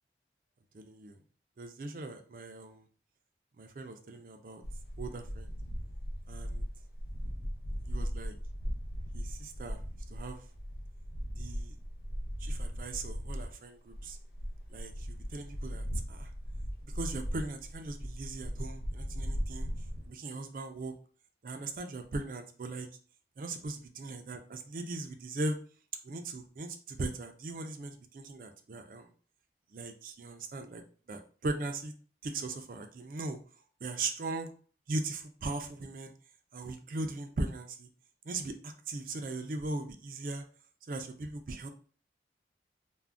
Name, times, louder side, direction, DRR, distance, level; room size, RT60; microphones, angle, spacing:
voice 1, 0.7-1.2 1.6-2.8 3.6-4.6 5.0-5.5 6.3-6.7 7.9-8.4 9.1-9.8 10.1-10.4 11.4-11.7 12.4-14.2 14.7-16.3 16.8-19.7 20.1-20.9 21.4-22.9 23.4-25.6 26.0-29.1 29.7-30.8 31.1-31.9 32.2-33.4 33.8-34.5 34.9-36.1 36.5-37.9 38.2-40.4 40.9-41.7, right 2 dB, 50° right, 6 dB, 0.4 m, -39 dB
sound 1, 4.6-13.5 13.9-20.1, equal, 55° left, 0.6 m, -38 dB
2.5 x 2.1 x 3.3 m, 0.42 s
head